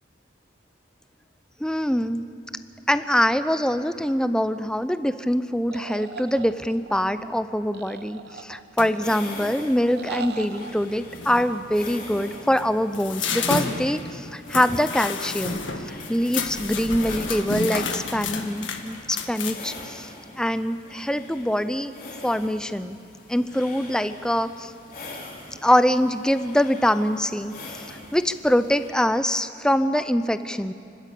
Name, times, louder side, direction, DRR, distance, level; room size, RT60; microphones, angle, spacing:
voice 1, 1.6-2.2 2.9-21.9 22.2-23.0 23.3-24.7 25.6-30.7, equal, 5° left, 11 dB, 0.5 m, -24 dB
sound 1, 5.7-7.0 7.7-8.9 9.9-10.7, right 4 dB, 55° right, 1.0 m, -38 dB
sound 2, 8.8-9.1 10.7-10.8 11.1-11.6 12.3-19.8, left 4 dB, 85° left, 1.7 m, -31 dB
sound 3, 9.0-28.9, left 2 dB, 45° left, 3.3 m, -43 dB
30.0 x 12.5 x 8.4 m, 2.6 s
head